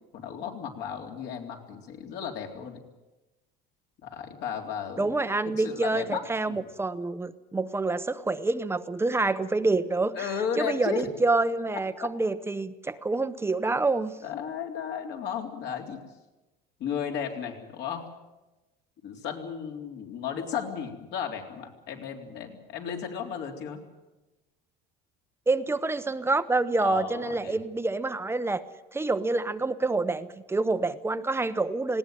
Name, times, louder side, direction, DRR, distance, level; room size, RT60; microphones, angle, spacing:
voice 1, 0.1-2.8 4.0-5.1 5.5-6.2 6.5-6.7 10.2-11.1 12.0-12.1 14.2-16.0 16.8-18.0 19.0-23.8 26.8-27.6, left 7 dB, 60° left, 3 dB, 3.6 m, -34 dB
voice 2, 5.0-14.2 25.5-28.6 28.9-32.0, right 3 dB, 10° right, 12 dB, 0.8 m, -27 dB
19.5 x 17.5 x 9.2 m, 1.1 s
cardioid pair, 125°, 20 cm